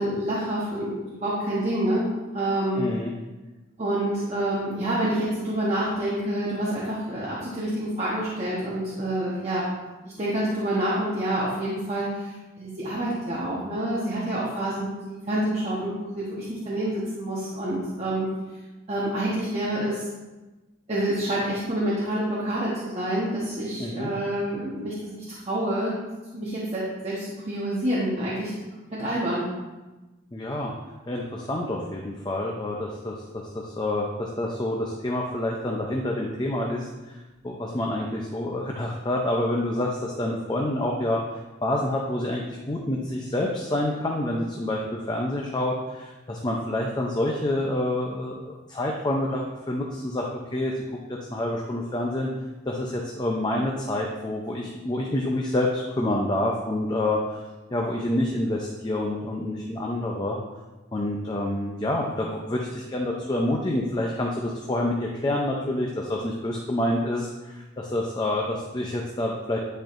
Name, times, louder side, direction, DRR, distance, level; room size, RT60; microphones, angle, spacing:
voice 1, 0.0-2.1 2.3-2.9 3.8-9.7 10.0-18.3 18.9-20.1 20.9-25.9 26.3-28.5 28.9-29.4, right 1 dB, 30° right, -8 dB, 1.0 m, -27 dB
voice 2, 2.7-3.1 23.8-24.1 30.3-30.7 31.1-41.2 41.6-50.7 51.1-52.3 52.7-57.4 57.7-60.4 60.9-69.6, left 1 dB, 20° left, 0 dB, 0.5 m, -28 dB
10.5 x 4.4 x 2.5 m, 1.2 s
head